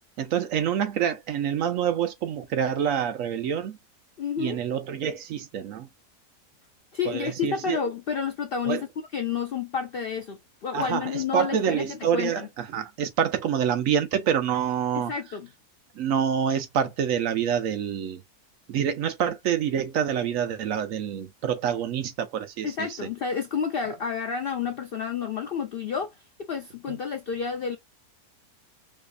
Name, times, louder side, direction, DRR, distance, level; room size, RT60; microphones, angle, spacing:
voice 1, 0.2-3.8 4.4-5.9 7.0-7.8 8.6-8.8 10.7-15.1 15.9-18.2 18.7-23.1 26.9-27.0, right 8 dB, 65° right, 1.0 m, -27 dB
voice 2, 4.2-4.6 6.9-8.9 9.1-12.5 14.9-15.5 22.6-27.8, left 6 dB, 80° left, 0.5 m, -30 dB
4.9 x 2.5 x 2.2 m
omnidirectional pair, 1.7 m